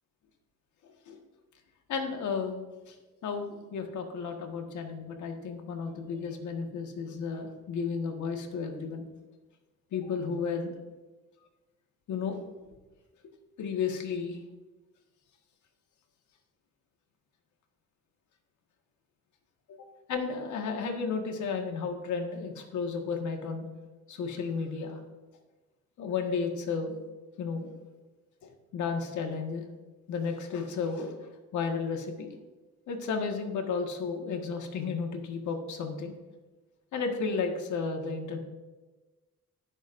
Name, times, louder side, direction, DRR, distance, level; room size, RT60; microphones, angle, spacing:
voice 1, 1.9-2.9 3.2-9.1 9.9-10.7 12.1-12.4 13.6-14.4 19.7-23.7 24.1-25.0 26.0-27.0 27.4-27.7 28.4-29.6 30.1-32.3 32.9-36.1 36.9-38.4, left 5 dB, 75° left, 3 dB, 1.7 m, -33 dB
19.0 x 6.4 x 2.6 m, 1.2 s
cardioid pair, 90°, 30 cm